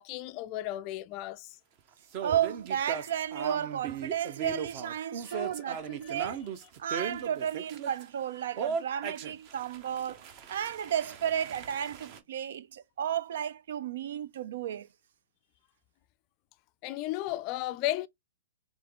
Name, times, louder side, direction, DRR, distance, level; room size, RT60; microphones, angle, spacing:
voice 1, 0.0-1.5 5.3-5.7 6.0-6.1 16.8-18.1, left 15 dB, 30° left, 0.3 m, -34 dB
sound 1, 2.1-8.0 8.6-12.2, right 6 dB, 30° right, 0.7 m, -38 dB
voice 2, 2.2-6.4 6.8-14.9, right 9 dB, 60° right, 0.4 m, -33 dB
3.6 x 3.4 x 3.5 m
hypercardioid pair, 160°, 0 cm